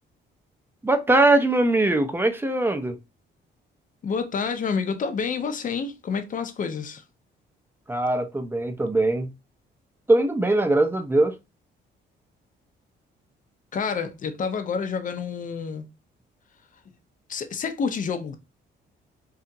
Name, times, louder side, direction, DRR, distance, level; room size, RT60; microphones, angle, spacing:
voice 1, 0.8-3.0 7.9-9.3 10.1-11.3, right 2 dB, 10° right, 0.5 m, -21 dB
voice 2, 4.0-7.0 13.7-15.9 17.3-18.4, left 5 dB, 40° left, 0.5 m, -28 dB
2.8 x 2.3 x 2.6 m
cardioid pair, 90°, 20 cm